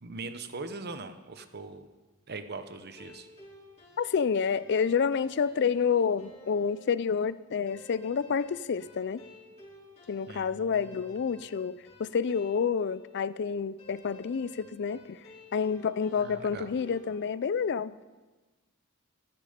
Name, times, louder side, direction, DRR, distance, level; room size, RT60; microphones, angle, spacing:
voice 1, 0.0-1.9 2.3-3.3 10.3-11.0 16.2-16.7, right 3 dB, 50° right, 0.9 m, -41 dB
sound 1, 2.7-17.1, left 1 dB, 30° left, 5.0 m, -53 dB
voice 2, 4.0-9.2 10.1-15.2 15.5-18.0, left 6 dB, 55° left, 0.4 m, -29 dB
14.0 x 14.0 x 5.1 m
head